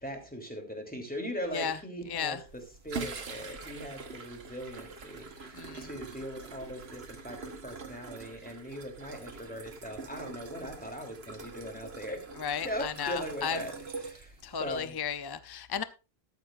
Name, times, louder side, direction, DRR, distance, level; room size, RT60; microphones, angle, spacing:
voice 1, 0.0-12.2 12.6-13.7 14.0-15.0, equal, 10° left, 3.2 m, -40 dB
voice 2, 2.1-2.4 5.5-5.9 12.4-13.6 14.4-15.8, left 8 dB, 30° left, 0.6 m, -34 dB
sound 1, 2.5-14.8, right 4 dB, 80° right, 1.6 m, -44 dB
13.5 x 13.0 x 2.5 m
omnidirectional pair, 1.0 m